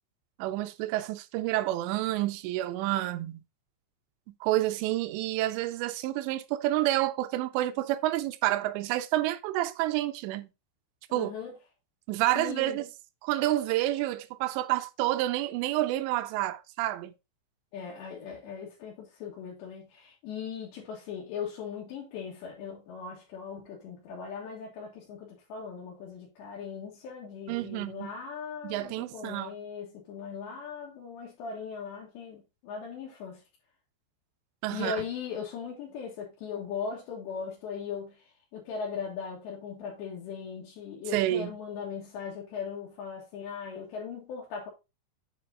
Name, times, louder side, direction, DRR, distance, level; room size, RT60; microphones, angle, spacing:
voice 1, 0.4-3.4 4.4-10.5 11.1-11.3 12.1-12.9 13.2-17.1 27.5-28.1 28.6-29.5 34.6-35.0 41.1-41.5, right 15 dB, 80° right, 2.9 m, -29 dB
voice 2, 11.1-11.6 12.4-12.8 17.7-33.4 34.7-38.2 38.5-44.7, left 6 dB, 75° left, 3.8 m, -39 dB
8.6 x 5.1 x 3.8 m
omnidirectional pair, 5.2 m